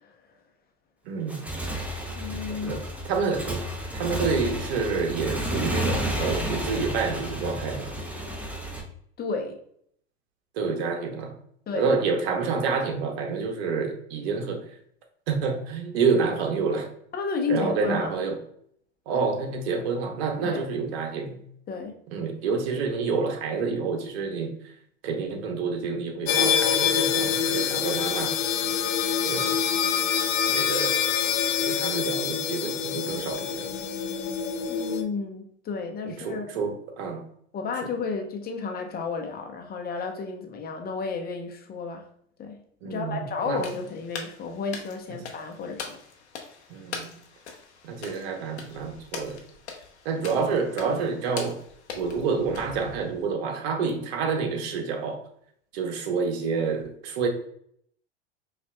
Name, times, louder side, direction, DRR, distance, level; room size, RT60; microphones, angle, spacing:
voice 1, 1.1-1.5 2.6-3.6 3.9-8.0 10.5-11.4 11.8-14.7 15.3-16.9 17.5-18.4 19.1-21.4 22.1-24.6 25.0-28.4 29.2-29.6 30.5-31.0 31.6-33.7 36.0-37.2 42.8-43.6 46.7-47.1 47.8-49.4 50.0-51.6 51.9-55.2 55.7-57.3, right 5 dB, 65° right, 3 dB, 0.9 m, -28 dB
Motorcycle / Engine, 1.2-8.8, equal, 5° right, 0.7 m, -31 dB
voice 2, 2.2-2.9 9.2-9.6 11.7-12.0 17.1-18.1 20.4-20.6 21.7-21.9 34.7-36.5 37.5-42.1 42.4-42.6 42.8-46.0, left 4 dB, 30° left, 3 dB, 0.8 m, -32 dB
sound 1, 26.3-35.0, left 8 dB, 55° left, 0.5 m, -25 dB
sound 2, 43.5-53.3, left 5 dB, 80° left, 0.8 m, -42 dB
5.1 x 2.5 x 2.2 m, 0.66 s
hypercardioid pair, 80°, 33 cm